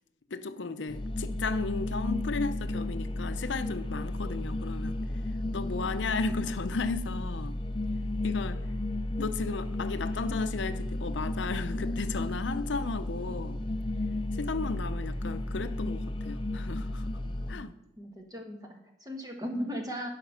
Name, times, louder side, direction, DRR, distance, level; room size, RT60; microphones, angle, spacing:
voice 1, 0.3-5.0 5.5-7.6 8.2-8.6 9.2-13.6 14.4-17.0 17.5-17.7, left 4 dB, 80° left, 0.6 m, -34 dB
sound 1, 0.9-17.5, left 1 dB, 25° left, 0.5 m, -33 dB
voice 2, 17.5-20.1, equal, 20° right, 1.4 m, -38 dB
11.5 x 5.8 x 5.7 m
head